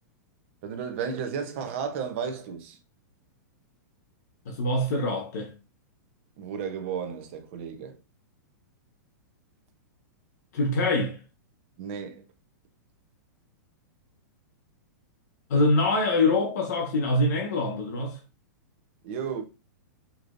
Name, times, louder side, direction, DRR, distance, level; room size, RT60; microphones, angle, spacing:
voice 1, 0.6-2.8 6.4-8.0 11.8-12.3 19.0-19.4, right 7 dB, 40° right, 0.7 m, -33 dB
voice 2, 4.5-5.5 10.5-11.2 15.5-18.2, left 2 dB, 60° left, 1.2 m, -24 dB
5.2 x 3.1 x 2.5 m
supercardioid pair, 165°, 10 cm